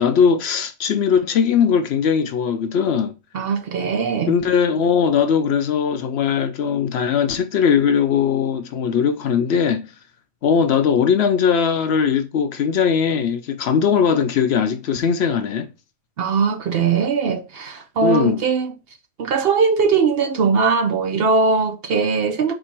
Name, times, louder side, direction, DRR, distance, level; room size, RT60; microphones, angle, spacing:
voice 1, 0.0-3.1 4.3-9.9 10.4-15.7 18.0-18.4, left 7 dB, 65° left, 0.8 m, -19 dB
voice 2, 3.3-4.3 16.2-18.7 19.2-22.5, right 5 dB, 60° right, 0.8 m, -20 dB
4.4 x 2.7 x 4.3 m
omnidirectional pair, 1.3 m